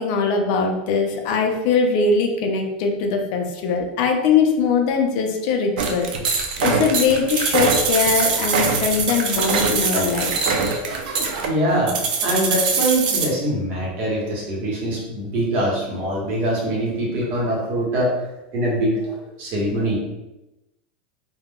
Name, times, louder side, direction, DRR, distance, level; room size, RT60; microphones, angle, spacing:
voice 1, 0.0-10.3, left 5 dB, 55° left, 3 dB, 0.5 m, -21 dB
sound 1, 5.8-13.3, right 5 dB, 75° right, 0.5 m, -22 dB
voice 2, 11.4-18.2 18.5-20.0, right 1 dB, 45° right, -3 dB, 1.1 m, -23 dB
2.3 x 2.2 x 3.5 m, 0.96 s
supercardioid pair, 145°, 5 cm